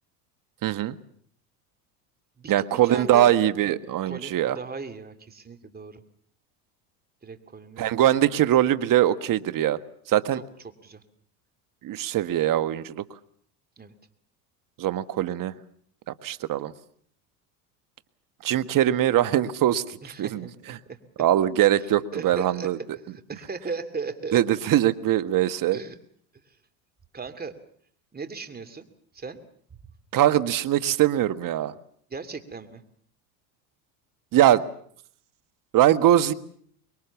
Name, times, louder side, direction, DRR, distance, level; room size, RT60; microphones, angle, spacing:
voice 1, 0.6-1.0 2.5-4.6 7.8-9.8 10.1-10.4 11.8-13.0 14.8-15.5 16.2-16.7 18.4-20.5 21.2-22.8 24.3-25.8 30.1-31.7 34.3-34.7 35.7-36.3, right 12 dB, 45° right, 12 dB, 1.4 m, -22 dB
voice 2, 2.4-3.4 4.0-6.0 7.2-7.9 10.3-11.0 13.8-13.9 20.0-21.0 21.7-24.4 25.7-26.0 26.4-26.6 27.1-27.5 28.1-28.9 29.1-29.4 29.7-29.8 32.1-32.8, right 4 dB, 20° right, 8 dB, 2.8 m, -37 dB
25.0 x 22.0 x 7.2 m, 0.62 s
hypercardioid pair, 90°, 46 cm